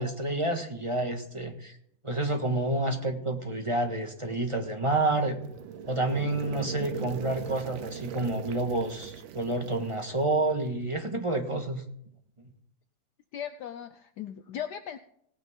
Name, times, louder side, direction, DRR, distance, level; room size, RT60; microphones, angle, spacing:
voice 1, 0.0-1.7 2.0-5.4 5.8-11.8, right 2 dB, 20° right, 3 dB, 1.4 m, -29 dB
sound 1, 4.8-10.9, right 8 dB, 85° right, 1.5 m, -41 dB
voice 2, 13.3-15.0, left 9 dB, 70° left, 9 dB, 1.2 m, -38 dB
18.5 x 9.2 x 3.7 m, 0.70 s
omnidirectional pair, 2.0 m